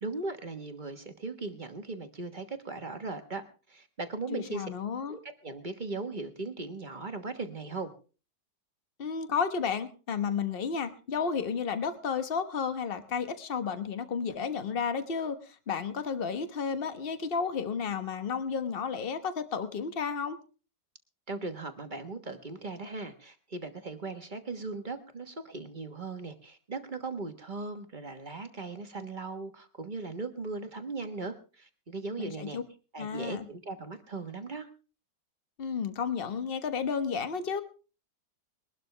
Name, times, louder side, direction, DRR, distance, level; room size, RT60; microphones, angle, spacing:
voice 1, 0.0-4.7 5.1-7.9 21.3-32.6 32.9-34.7, right 3 dB, 30° right, 7 dB, 1.3 m, -38 dB
voice 2, 4.3-5.2 9.0-20.4 32.2-32.6 33.0-33.4 35.6-37.6, left 6 dB, 35° left, 10 dB, 1.2 m, -32 dB
22.0 x 12.0 x 3.3 m, 0.35 s
omnidirectional pair, 1.8 m